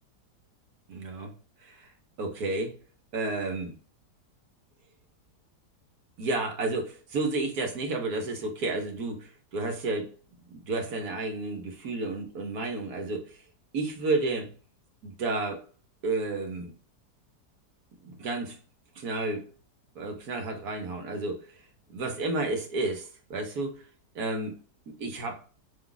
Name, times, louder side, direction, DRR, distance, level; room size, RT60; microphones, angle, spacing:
voice 1, 0.9-1.3 1.6-1.9 2.2-2.8 3.1-3.8 6.2-10.1 10.5-13.4 13.7-14.5 15.0-15.6 16.0-16.7 18.0-18.6 19.0-19.5 19.9-21.5 21.9-23.8 24.1-24.6 24.9-25.4, right 3 dB, 70° right, 3 dB, 1.4 m, -31 dB
5.8 x 2.4 x 3.9 m, 0.36 s
omnidirectional pair, 1.8 m